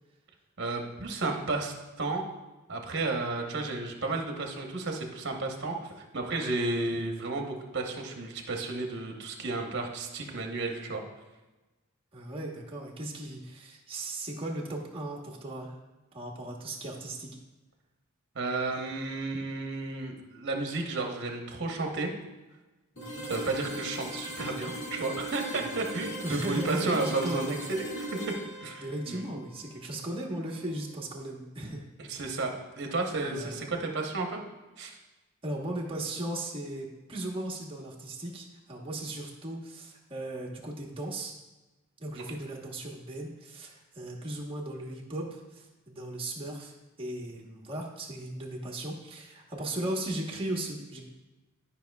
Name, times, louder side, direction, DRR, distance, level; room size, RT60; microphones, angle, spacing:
voice 1, 0.6-2.2 2.7-11.0 18.3-22.1 23.3-28.2 28.6-29.2 32.0-34.4 34.8-35.0 42.2-42.3, right 3 dB, 55° right, 2 dB, 1.0 m, -32 dB
voice 2, 12.1-15.8 16.1-17.3 22.9-23.3 25.5-25.9 26.2-27.7 28.8-31.8 33.3-33.7 35.4-41.3 42.0-46.7 47.0-51.0, right 1 dB, 25° right, -2 dB, 1.1 m, -37 dB
sound 1, 23.0-30.8, equal, 65° left, 1.9 m, -40 dB
12.0 x 5.6 x 2.3 m, 1.1 s
head